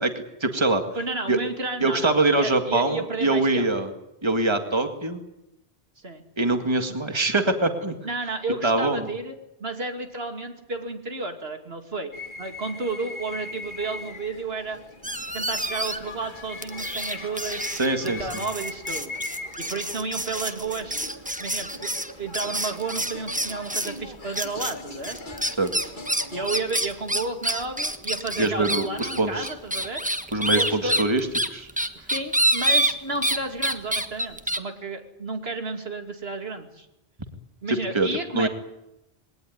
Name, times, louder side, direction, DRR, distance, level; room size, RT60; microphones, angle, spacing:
voice 1, 0.0-0.8 1.3-1.4 1.8-3.9 4.2-5.2 6.4-8.0 8.6-9.1 17.7-18.2 25.6-25.7 28.4-29.5 30.3-31.7 37.7-38.1 38.3-38.5, right 2 dB, 25° right, 6 dB, 2.0 m, -23 dB
voice 2, 0.9-3.7 6.0-6.2 6.9-7.0 8.0-9.3 9.6-12.1 12.4-14.8 15.3-17.7 18.0-19.1 19.6-21.0 21.4-21.9 22.2-25.2 26.3-30.0 30.6-31.0 32.0-36.9 37.6-38.5, right 3 dB, 80° right, 5 dB, 2.9 m, -32 dB
sound 1, 12.1-26.6, left 2 dB, 50° left, 2.1 m, -40 dB
sound 2, 15.0-16.2 16.6-24.0 24.3-24.7 25.0-33.4 33.6-34.6, right 1 dB, 10° right, 1.3 m, -27 dB
21.5 x 18.0 x 9.6 m, 0.89 s
omnidirectional pair, 1.0 m